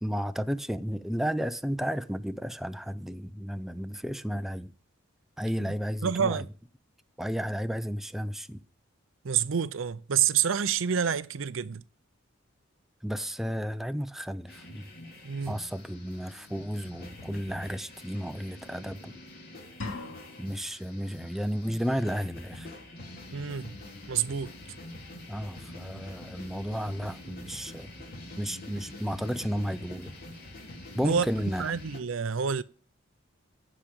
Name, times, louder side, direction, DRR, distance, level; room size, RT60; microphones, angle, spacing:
voice 1, 0.0-4.7 5.4-6.4 7.2-8.6 13.0-14.8 15.5-19.2 20.4-22.7 25.3-27.9 28.4-30.1 30.9-31.8, equal, ahead, 0.5 m, -33 dB
voice 2, 6.0-6.5 9.2-11.8 15.2-15.6 23.3-23.8 24.1-24.5 31.0-31.2 31.6-32.6, right 7 dB, 85° right, 0.6 m, -28 dB
sound 1, 14.5-32.0, left 2 dB, 50° left, 3.2 m, -46 dB
sound 2, 19.8-20.8, left 3 dB, 75° left, 2.5 m, -39 dB
15.0 x 5.0 x 8.7 m
head